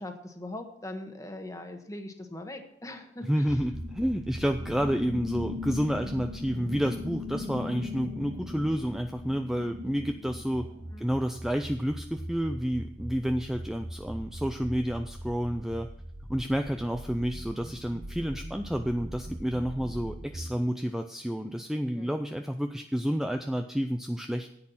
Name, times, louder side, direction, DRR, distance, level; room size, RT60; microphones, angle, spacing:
voice 1, 0.0-3.4 10.9-11.1 21.9-22.1, left 1 dB, 20° left, 6 dB, 1.3 m, -41 dB
voice 2, 3.2-10.7 11.0-15.9 16.3-24.5, equal, 5° right, 6 dB, 0.4 m, -30 dB
sound 1, 3.5-20.5, right 1 dB, 40° right, 1.0 m, -42 dB
sound 2, 3.6-11.4, left 3 dB, 80° right, 3.4 m, -39 dB
10.0 x 8.8 x 5.7 m, 0.74 s
head